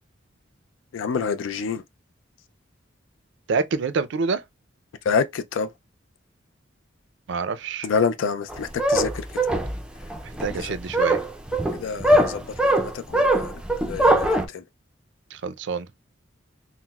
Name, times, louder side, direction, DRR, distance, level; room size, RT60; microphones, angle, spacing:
voice 1, 0.9-1.8 5.0-5.7 7.8-9.3 10.4-10.8 11.7-14.6, left 5 dB, 75° left, 0.4 m, -28 dB
voice 2, 3.5-4.4 7.3-7.9 10.2-11.2 15.3-15.9, right 4 dB, 65° right, 0.4 m, -27 dB
sound 1, 8.5-14.5, right 1 dB, 5° right, 0.4 m, -21 dB
5.7 x 2.0 x 2.2 m
head